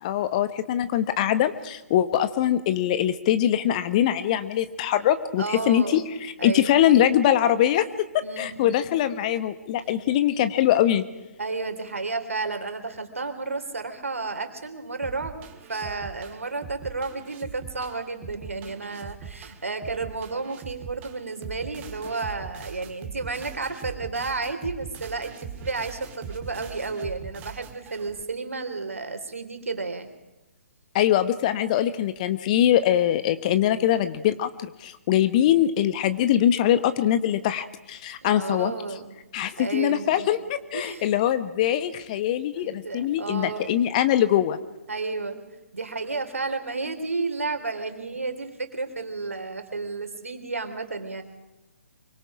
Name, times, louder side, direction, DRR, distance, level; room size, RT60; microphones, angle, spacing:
voice 1, 0.0-7.9 8.1-11.0 30.9-38.7 39.3-44.6, left 11 dB, 30° left, 12 dB, 1.1 m, -22 dB
voice 2, 5.4-6.0 6.4-6.7 8.2-8.7 11.4-30.1 38.2-39.1 39.6-40.3 40.7-41.1 42.5-43.8 44.9-45.4 45.7-51.2, right 3 dB, 65° right, 7 dB, 3.3 m, -32 dB
sound 1, 15.0-28.2, right 7 dB, 20° right, 1.8 m, -41 dB
24.5 x 24.0 x 5.0 m, 1.0 s
figure-of-eight pair, 130°, 8 cm